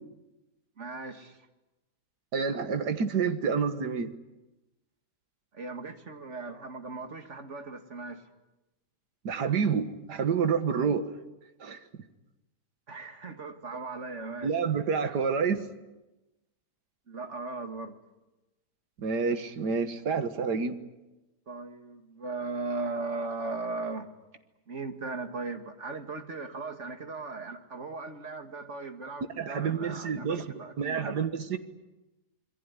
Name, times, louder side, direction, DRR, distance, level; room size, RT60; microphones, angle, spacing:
voice 1, 0.8-1.5 5.5-8.2 12.9-14.6 17.1-18.0 21.5-24.1 24.7-31.2, right 3 dB, 45° right, 6 dB, 2.4 m, -38 dB
voice 2, 2.3-4.1 9.2-11.2 11.6-11.8 14.4-15.6 19.0-20.8 29.4-30.5 30.8-31.6, right 6 dB, 90° right, 9 dB, 2.1 m, -28 dB
27.0 x 22.0 x 9.8 m, 1.0 s
omnidirectional pair, 1.7 m